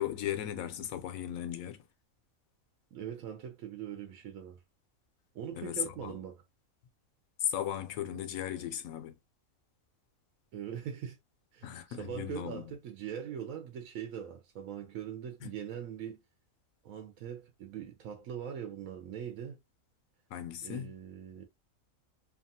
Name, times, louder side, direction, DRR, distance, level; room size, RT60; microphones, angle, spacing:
voice 1, 0.0-1.8 5.6-6.1 7.4-9.1 11.6-12.6 15.4-15.5 20.3-20.9, left 10 dB, 85° left, 1.1 m, -36 dB
voice 2, 2.9-4.6 5.3-6.4 10.5-11.2 11.5-16.2 16.8-19.6 20.6-21.4, right 9 dB, 85° right, 1.1 m, -41 dB
2.9 x 2.4 x 2.6 m
omnidirectional pair, 1.4 m